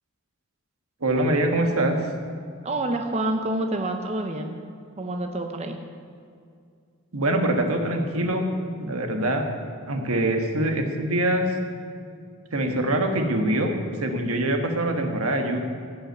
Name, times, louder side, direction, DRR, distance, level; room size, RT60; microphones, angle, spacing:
voice 1, 1.0-2.0 7.1-8.5 8.8-9.5 9.9-11.4 12.5-13.7 14.0-15.6, right 1 dB, 85° right, 3 dB, 1.5 m, -24 dB
voice 2, 2.6-4.5 5.0-5.8, right 1 dB, 30° right, 4 dB, 0.7 m, -27 dB
16.0 x 5.7 x 8.0 m, 2.3 s
head